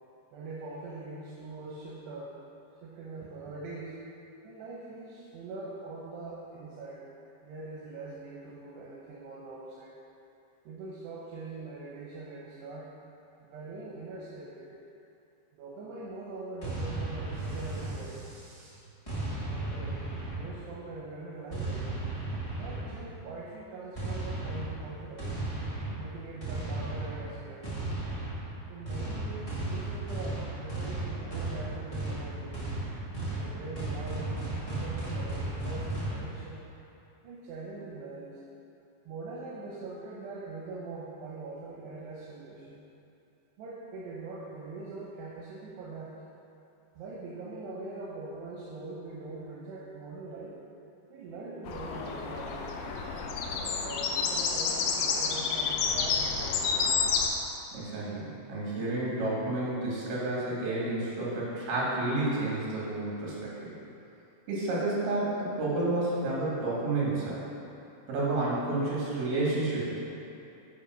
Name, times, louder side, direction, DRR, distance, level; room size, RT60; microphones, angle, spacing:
voice 1, 0.3-2.3 2.8-4.0 4.4-7.1 7.4-10.0 10.7-12.9 13.4-14.8 15.5-18.8 19.5-20.0 20.3-21.8 22.5-25.4 25.9-27.9 28.7-32.7 33.3-36.6 37.2-38.4 39.1-42.8 43.6-46.1 46.9-50.6 51.1-52.8 53.5-56.8, right 3 dB, 85° right, -6 dB, 3.1 m, -42 dB
sound 1, 16.6-18.4 19.1-20.8 21.5-23.1 23.9-36.2, right 2 dB, 40° left, 0.5 m, -35 dB
sound 2, 51.7-57.3, left 5 dB, 80° left, 2.1 m, -29 dB
voice 2, 57.7-63.7 64.5-67.4 68.1-70.0, right 2 dB, 70° right, -6 dB, 4.1 m, -30 dB
8.9 x 5.1 x 6.1 m, 2.8 s
omnidirectional pair, 4.7 m